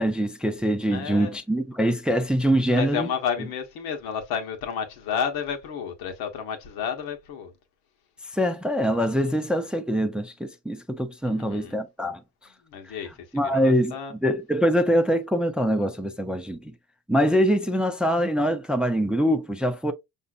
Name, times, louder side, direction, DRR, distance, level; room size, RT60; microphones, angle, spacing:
voice 1, 0.0-3.1 8.3-12.2 12.9-13.0 13.3-16.7 17.1-19.9, equal, 5° right, 0.4 m, -24 dB
voice 2, 0.9-1.3 2.7-7.5 11.2-11.7 12.6-14.1, left 7 dB, 80° left, 1.2 m, -31 dB
5.4 x 2.6 x 2.3 m
cardioid pair, 120°, 36 cm